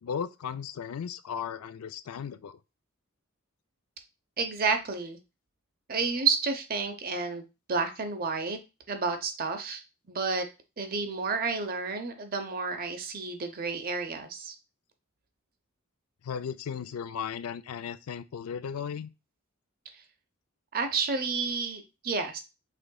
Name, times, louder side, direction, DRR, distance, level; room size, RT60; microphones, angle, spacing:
voice 1, 0.0-2.6 16.2-19.1, left 7 dB, 85° left, 0.4 m, -36 dB
voice 2, 4.4-5.2 5.9-7.4 7.7-8.6 8.9-9.8 10.1-10.5 10.8-14.5 20.7-22.4, right 4 dB, 45° right, 0.7 m, -30 dB
5.1 x 3.7 x 2.2 m
head